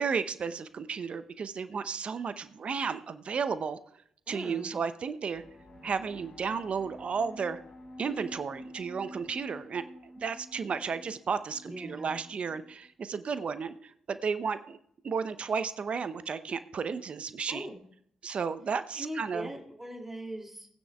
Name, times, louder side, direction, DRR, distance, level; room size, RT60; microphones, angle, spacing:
voice 1, 0.0-3.8 4.3-5.4 5.8-7.6 8.0-9.8 10.2-14.8 15.0-17.7 18.2-19.5, right 6 dB, 50° right, 13 dB, 0.7 m, -33 dB
voice 2, 4.3-4.7 11.6-12.2 17.5-17.8 18.9-20.7, right 1 dB, 10° right, 1 dB, 2.5 m, -40 dB
sound 1, 5.3-12.9, left 1 dB, 35° left, 4.3 m, -49 dB
19.5 x 9.6 x 2.3 m, 0.66 s
hypercardioid pair, 40°, 3 cm